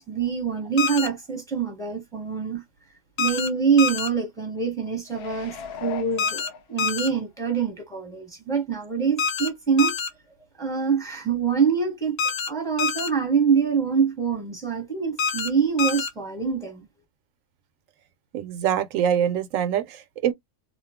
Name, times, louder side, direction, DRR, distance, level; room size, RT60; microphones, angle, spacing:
voice 1, 0.0-2.6 3.2-6.4 6.7-9.9 10.6-12.2 12.5-16.8, right 6 dB, 5° left, 0.9 m, -25 dB
sound 1, 0.8-1.1 3.2-3.5 3.8-4.1 6.2-6.5 6.8-7.1 9.2-9.5 9.8-10.1 12.2-12.5 12.8-13.1 15.2-15.5 15.8-16.1, left 5 dB, 90° left, 1.1 m, -26 dB
sound 2, 5.1-7.2 7.6-7.7, left 6 dB, 65° left, 0.7 m, -38 dB
voice 2, 18.3-20.3, right 9 dB, 80° right, 1.0 m, -24 dB
2.6 x 2.4 x 3.4 m
omnidirectional pair, 1.3 m